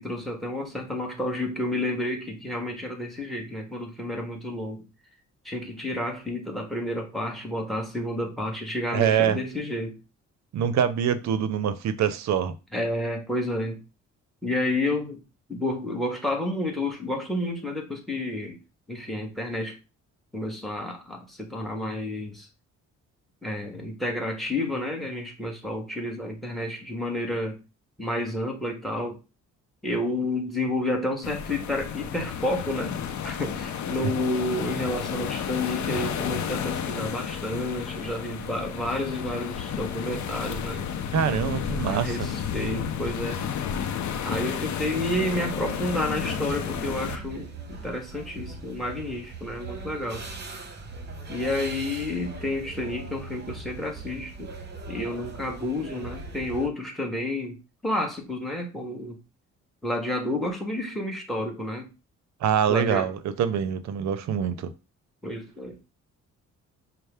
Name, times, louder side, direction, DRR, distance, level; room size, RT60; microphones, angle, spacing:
voice 1, 0.0-4.8 5.4-10.0 12.7-13.8 14.4-15.2 15.5-18.6 18.9-19.8 20.3-22.5 23.4-27.6 28.0-29.2 29.8-33.0 33.2-40.8 41.8-43.4 44.2-50.3 51.3-54.5 54.9-59.2 59.8-61.9 62.7-63.1 65.2-65.8, left 1 dB, ahead, 1.3 m, -30 dB
voice 2, 8.9-9.4 10.5-12.5 41.1-42.3 62.4-64.7, right 8 dB, 65° right, 0.6 m, -25 dB
sound 1, 31.2-47.2, left 8 dB, 70° left, 0.6 m, -32 dB
sound 2, 44.8-56.7, right 3 dB, 35° right, 0.9 m, -40 dB
5.3 x 2.1 x 3.4 m
cardioid pair, 90°, 30 cm